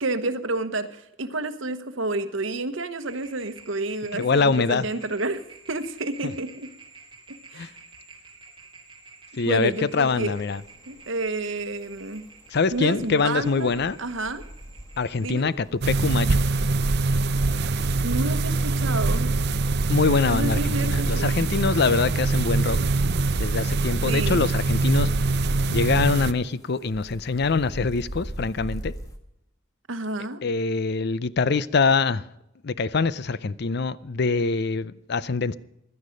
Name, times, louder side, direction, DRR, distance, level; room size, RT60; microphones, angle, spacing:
voice 1, 0.0-5.4 5.7-6.7 7.5-7.7 9.5-10.3 10.9-12.2 12.7-14.4 15.2-15.5 18.0-19.3 20.3-21.3 24.1-24.5 29.9-30.4, right 2 dB, 70° right, 1.2 m, -29 dB
sound 1, 3.0-15.3, right 4 dB, 25° right, 2.6 m, -50 dB
voice 2, 4.1-4.9 6.2-6.3 7.5-7.7 9.4-10.6 12.5-14.0 15.0-16.4 19.9-22.8 23.4-25.1 25.7-28.9 30.4-32.3 32.6-35.6, left 4 dB, 55° left, 0.5 m, -24 dB
sound 2, 10.2-29.2, equal, 15° left, 1.4 m, -45 dB
sound 3, 15.8-26.3, right 3 dB, 55° right, 0.6 m, -23 dB
16.0 x 12.0 x 5.2 m
head